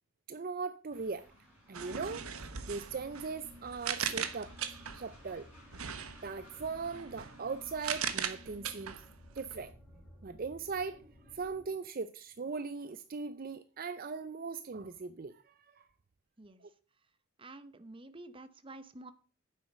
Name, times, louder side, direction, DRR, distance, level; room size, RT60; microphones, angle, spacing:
voice 1, 0.3-1.3 1.7-2.3 2.7-4.5 4.9-5.5 6.2-9.0 9.3-9.7 10.2-15.9 16.6-16.7, right 4 dB, 40° right, 0.5 m, -39 dB
Train, 0.9-8.0, equal, 10° right, 5.5 m, -61 dB
sound 1, 1.7-5.1 5.7-9.6, right 8 dB, 85° right, 1.2 m, -39 dB
sound 2, 2.2-11.7, equal, 5° left, 5.6 m, -57 dB
voice 2, 17.4-19.1, right 2 dB, 25° right, 0.9 m, -49 dB
9.5 x 7.6 x 6.1 m
head